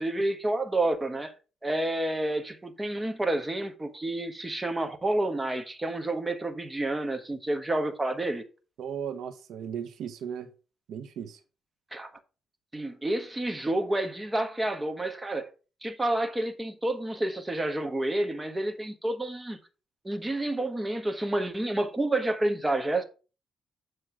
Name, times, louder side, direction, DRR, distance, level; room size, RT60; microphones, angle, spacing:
voice 1, 0.0-1.3 1.6-8.4 11.9-12.1 12.7-15.5 15.8-19.6 20.0-23.0, right 1 dB, 15° right, 1.2 m, -29 dB
voice 2, 8.8-10.5 10.9-11.4, right 8 dB, 75° right, 0.8 m, -36 dB
7.6 x 3.2 x 6.1 m
cardioid pair, 90°, 0 cm